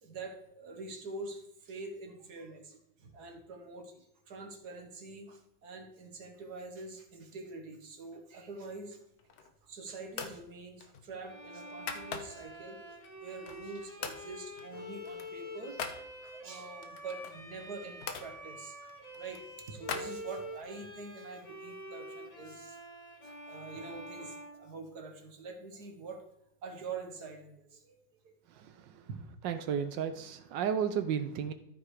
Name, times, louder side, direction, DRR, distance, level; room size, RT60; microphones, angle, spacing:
voice 1, 0.0-9.0 9.6-18.9 19.2-22.8 23.2-26.2 26.6-28.0 28.2-28.6 29.1-29.2, right 3 dB, 55° right, 4 dB, 1.8 m, -45 dB
sound 1, 9.1-9.7 10.1-10.4 10.8-12.6 13.0-13.7 14.0-14.3 14.6-16.0 16.8-18.3 18.8-20.7, left 6 dB, 60° left, 1.3 m, -42 dB
Bowed string instrument, 11.2-25.3, equal, 20° left, 1.3 m, -47 dB
voice 2, 28.6-29.0 29.4-31.5, right 8 dB, 75° right, 9 dB, 1.3 m, -33 dB
13.5 x 4.7 x 4.8 m, 0.81 s
omnidirectional pair, 2.1 m